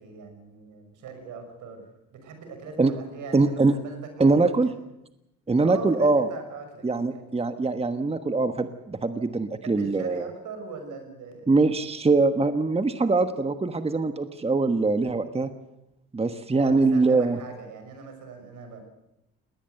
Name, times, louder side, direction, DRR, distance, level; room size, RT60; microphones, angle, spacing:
voice 1, 0.0-4.7 5.6-7.2 9.6-11.5 16.5-18.8, right 5 dB, 80° right, 6 dB, 6.1 m, -41 dB
voice 2, 3.3-3.7 4.2-4.7 5.5-6.3 6.8-10.2 11.5-15.5 16.1-17.4, right 3 dB, 20° right, 9 dB, 1.3 m, -23 dB
20.0 x 18.5 x 8.2 m, 0.87 s
cardioid pair, 90°, 30 cm